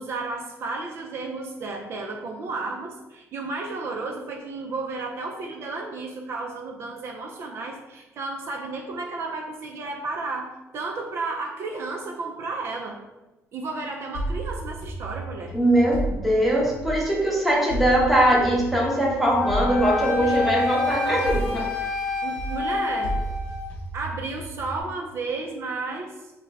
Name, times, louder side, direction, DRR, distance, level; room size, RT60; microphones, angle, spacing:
voice 1, 0.0-13.0 13.5-15.5 20.2-20.4 22.2-23.2 23.9-26.3, right 3 dB, 55° right, 1 dB, 0.4 m, -33 dB
sound 1, 14.1-17.2 17.7-22.1 22.4-24.8, right 2 dB, 70° left, 0.8 m, -33 dB
voice 2, 15.5-21.7, right 1 dB, ahead, -4 dB, 0.7 m, -21 dB
Wind instrument woodwind instrument, 19.4-23.7, left 3 dB, 25° left, 1.0 m, -28 dB
3.2 x 2.1 x 3.4 m, 1.1 s
cardioid pair, 130°, 5 cm